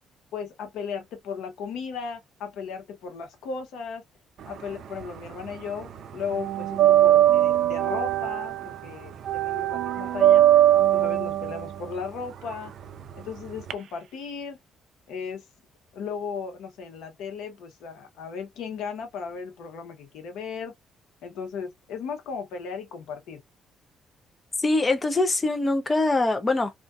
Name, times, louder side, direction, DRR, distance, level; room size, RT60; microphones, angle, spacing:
voice 1, 0.3-4.0 4.5-10.4 10.9-12.7 13.2-14.6 15.1-15.4 15.9-20.7 21.2-23.4, left 6 dB, 80° left, 0.8 m, -36 dB
sound 1, 4.4-5.6 5.8-13.7, right 12 dB, 55° right, 0.3 m, -22 dB
voice 2, 24.6-26.7, left 2 dB, 20° left, 0.4 m, -23 dB
2.4 x 2.2 x 2.4 m
cardioid pair, 140°, 0 cm